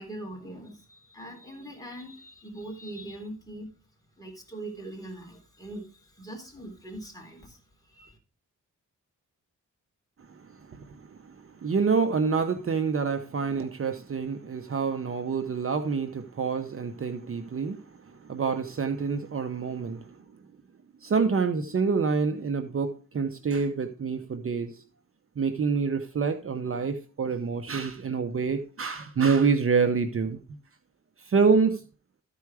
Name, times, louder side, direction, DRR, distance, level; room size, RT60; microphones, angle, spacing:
voice 1, 0.0-3.7 4.2-8.2, right 1 dB, 10° left, 3.6 m, -42 dB
voice 2, 10.2-20.2 21.0-24.8 25.4-30.4 31.2-31.8, right 5 dB, 45° right, 0.8 m, -27 dB
13.5 x 4.7 x 4.8 m
cardioid pair, 95°, 31 cm